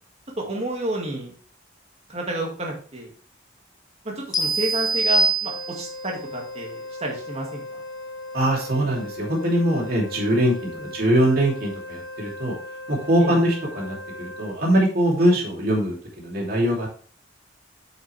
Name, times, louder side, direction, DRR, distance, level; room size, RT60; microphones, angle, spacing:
voice 1, 0.4-1.3 2.1-3.1 4.0-7.8 10.8-10.9 13.2-13.4, right 2 dB, 30° right, 0 dB, 1.9 m, -30 dB
sound 1, 4.3-6.1, right 2 dB, 20° left, 0.8 m, -23 dB
Wind instrument woodwind instrument, 5.4-14.6, left 2 dB, 70° left, 3.0 m, -38 dB
voice 2, 8.3-12.5 12.9-16.9, right 1 dB, 50° right, -2 dB, 2.9 m, -22 dB
7.2 x 6.4 x 3.3 m, 0.42 s
head